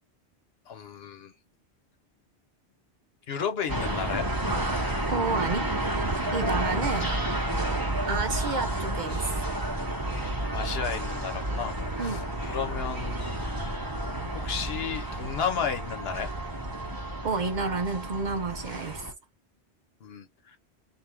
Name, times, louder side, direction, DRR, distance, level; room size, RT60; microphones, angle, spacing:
voice 1, 0.7-1.3 3.3-4.3 10.5-13.5 14.3-16.3 20.0-20.6, left 7 dB, 65° left, 1.0 m, -33 dB
sound 1, 3.7-19.1, right 1 dB, 20° right, 1.0 m, -31 dB
voice 2, 5.1-5.7 6.3-7.1 8.1-9.4 12.0-12.2 17.2-19.1, right 4 dB, 55° right, 0.6 m, -30 dB
3.5 x 2.5 x 4.4 m
omnidirectional pair, 1.1 m